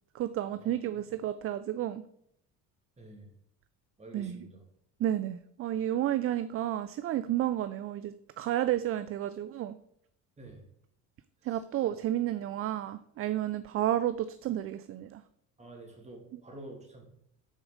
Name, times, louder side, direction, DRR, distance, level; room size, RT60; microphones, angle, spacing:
voice 1, 0.1-2.0 4.1-4.5 5.0-9.7 11.4-15.2, right 12 dB, 40° right, 12 dB, 0.4 m, -31 dB
voice 2, 3.0-3.3 4.0-4.6 10.4-10.6 11.5-11.6 15.6-17.0, right 1 dB, 20° right, 1 dB, 2.4 m, -48 dB
6.4 x 4.9 x 6.5 m, 0.72 s
cardioid pair, 115°, 35 cm